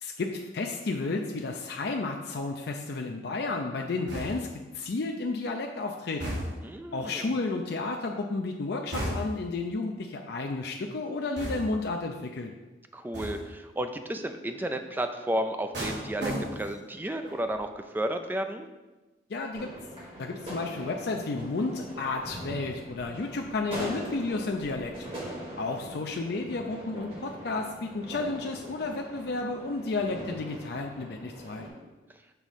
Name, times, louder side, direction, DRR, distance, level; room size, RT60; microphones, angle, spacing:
voice 1, 0.0-6.4 6.9-12.5 19.3-19.7 20.2-24.9 25.6-31.7, left 3 dB, 65° left, 2 dB, 0.5 m, -32 dB
sound 1, 4.1-4.6 6.2-6.8 8.9-9.5 11.4-11.9 13.1-13.6 15.7-16.9 17.2-17.6, equal, 70° right, 1.5 m, -35 dB
voice 2, 6.6-7.3 12.9-18.7, right 1 dB, 10° right, 7 dB, 0.4 m, -32 dB
sound 2, 19.5-31.7, right 1 dB, 35° right, 2.1 m, -42 dB
6.8 x 3.1 x 5.5 m, 1.1 s
head